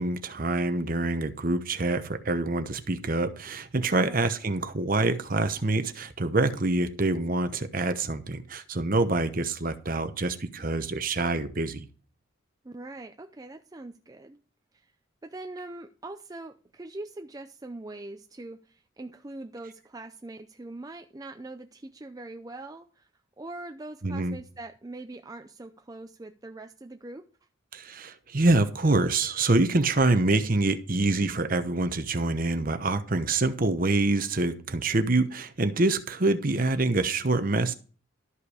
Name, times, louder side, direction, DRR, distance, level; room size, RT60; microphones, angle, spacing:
voice 1, 0.0-11.8 24.0-24.4 27.7-37.7, right 2 dB, 40° right, 0.9 m, -26 dB
voice 2, 12.6-14.4 14.7-14.9 15.2-23.1 23.4-27.3, right 2 dB, 20° right, 0.4 m, -42 dB
12.5 x 5.6 x 4.9 m
head